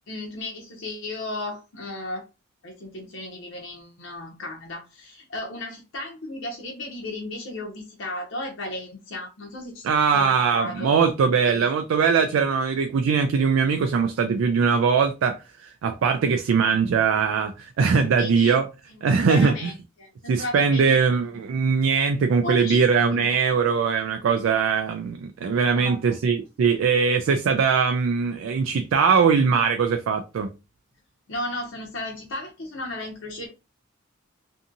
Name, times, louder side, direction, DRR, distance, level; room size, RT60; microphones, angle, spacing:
voice 1, 0.1-2.3 2.6-9.9 10.1-10.9 11.4-11.7 18.2-18.6 19.3-21.0 22.4-22.8 23.1-23.4 25.6-26.0 31.3-33.5, left 1 dB, 80° left, 0.6 m, -34 dB
voice 2, 9.8-18.7 19.0-19.7 20.3-30.5, right 5 dB, 85° right, 0.3 m, -21 dB
2.6 x 2.6 x 2.5 m
head